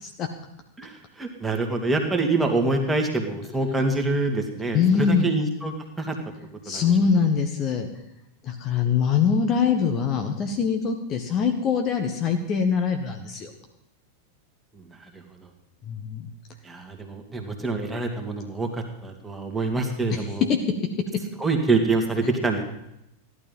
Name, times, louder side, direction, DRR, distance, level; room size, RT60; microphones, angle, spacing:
voice 1, 0.8-6.1 6.7-6.8 14.8-15.5 16.6-20.5 21.4-22.6, right 3 dB, 10° right, 2 dB, 2.5 m, -26 dB
voice 2, 4.7-5.3 6.6-7.9 8.4-13.5 15.8-16.3 20.1-20.2 20.5-20.6, left 6 dB, 30° left, 4 dB, 1.6 m, -23 dB
15.0 x 11.5 x 5.5 m, 0.82 s
figure-of-eight pair, 90°, 0 cm